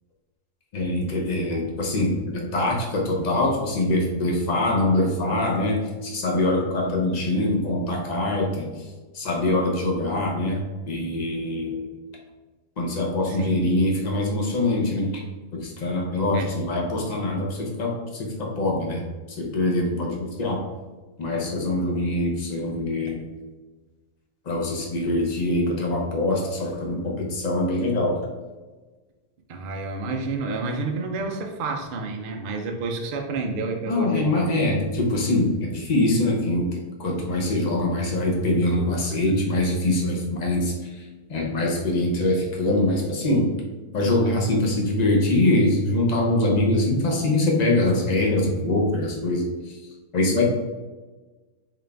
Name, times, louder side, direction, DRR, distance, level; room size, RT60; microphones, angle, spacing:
voice 1, 0.7-8.7 9.1-11.9 12.8-15.2 15.5-19.0 19.3-20.6 21.2-23.3 24.5-28.2 33.9-43.5 43.9-49.8 50.1-50.4, left 1 dB, 45° left, -1 dB, 0.5 m, -24 dB
voice 2, 13.3-13.7 16.3-16.5 29.5-34.7, right 3 dB, 80° right, 2 dB, 0.4 m, -30 dB
3.8 x 2.5 x 3.3 m, 1.3 s
omnidirectional pair, 1.6 m